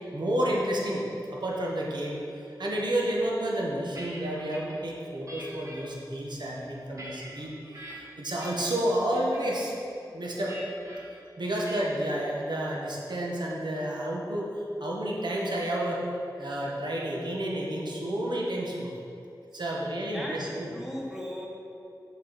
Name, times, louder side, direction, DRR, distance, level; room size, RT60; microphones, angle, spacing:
voice 1, 0.1-1.0 1.3-2.2 2.6-7.5 7.8-9.7 10.1-10.6 11.1-14.5 14.8-16.0 16.4-18.9 19.5-20.7, right 1 dB, 75° right, -3 dB, 1.1 m, -30 dB
sound 1, 3.5-4.8 5.3-5.8 6.4-7.9 8.4-8.8 9.1-9.5 10.5-11.0 11.6-12.0, equal, 45° right, 1.6 m, -44 dB
voice 2, 20.1-21.5, equal, 5° right, -3 dB, 1.4 m, -37 dB
6.3 x 6.3 x 4.0 m, 2.8 s
wide cardioid pair, 75°, 8 cm